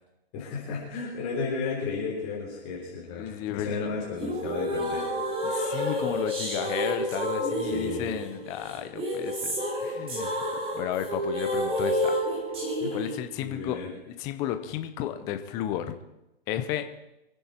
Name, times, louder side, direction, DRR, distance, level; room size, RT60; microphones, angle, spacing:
voice 1, 0.3-5.1 7.7-8.1 12.8-13.0 13.4-13.9, left 4 dB, 35° left, -3 dB, 3.9 m, -33 dB
voice 2, 3.2-3.9 5.4-10.3 10.7-12.1 12.9-16.0 16.5-16.8, left 11 dB, 10° left, 8 dB, 0.4 m, -33 dB
sound 1, 4.2-13.2, equal, 15° right, 3.5 m, -30 dB
24.5 x 9.9 x 4.3 m, 0.91 s
hypercardioid pair, 145°, 33 cm